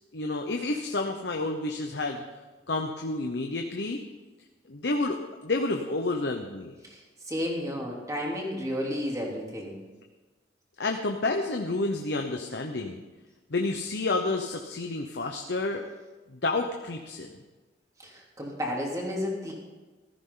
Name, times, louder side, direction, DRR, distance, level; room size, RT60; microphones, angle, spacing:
voice 1, 0.1-2.2 2.7-4.0 4.7-5.2 5.4-6.7 10.8-13.0 13.5-15.8 16.3-17.3, left 2 dB, 70° left, 3 dB, 1.0 m, -29 dB
voice 2, 6.8-9.8 18.0-19.5, left 1 dB, 20° right, -2 dB, 3.1 m, -32 dB
15.5 x 13.5 x 4.0 m, 1.2 s
head